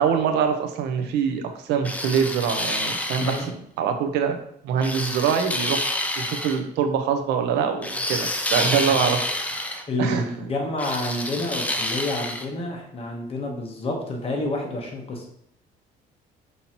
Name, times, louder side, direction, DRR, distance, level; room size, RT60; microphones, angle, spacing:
voice 1, 0.0-3.5 3.8-4.4 4.6-9.2 9.6-10.3, right 7 dB, 85° right, 6 dB, 0.6 m, -24 dB
sound 1, 1.9-3.5 4.8-6.6 7.8-9.8 10.8-12.5, left 1 dB, 10° left, 0.4 m, -28 dB
voice 2, 3.1-3.6 8.9-9.0 9.9-15.2, left 2 dB, 35° left, 1 dB, 1.1 m, -29 dB
5.3 x 2.8 x 2.9 m, 0.69 s
cardioid pair, 110°, 17 cm